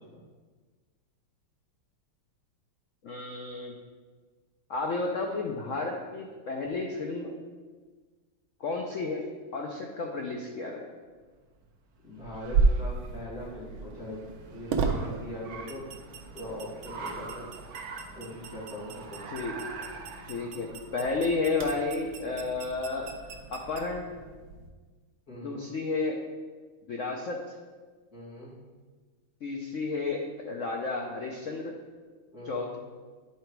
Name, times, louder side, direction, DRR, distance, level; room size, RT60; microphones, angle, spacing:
voice 1, 3.0-3.7 4.7-7.3 8.6-9.2 9.5-10.9 19.3-19.5 20.3-23.1 23.5-24.1 25.3-26.2 26.9-27.4 29.4-30.2 30.4-31.7 32.4-32.8, left 3 dB, 65° left, 0 dB, 0.7 m, -32 dB
Car, 11.2-24.1, right 4 dB, 60° right, 1.0 m, -46 dB
voice 2, 12.0-14.2 14.5-15.8 16.3-17.5 18.1-19.4 25.3-25.7 28.1-28.6 32.3-32.7, left 1 dB, 45° left, -8 dB, 3.0 m, -41 dB
sound 1, 12.4-24.7, right 4 dB, 90° right, 1.6 m, -34 dB
10.0 x 3.8 x 4.6 m, 1.4 s
omnidirectional pair, 2.2 m